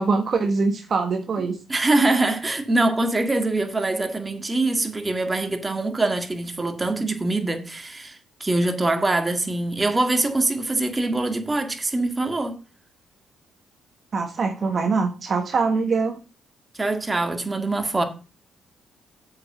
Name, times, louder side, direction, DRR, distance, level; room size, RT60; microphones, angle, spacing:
voice 1, 0.0-1.6 14.1-16.2, right 4 dB, 45° right, 1.3 m, -23 dB
voice 2, 1.7-12.6 16.8-18.0, right 2 dB, 20° right, 1.9 m, -23 dB
7.7 x 6.1 x 6.6 m
cardioid pair, 90°, 0 cm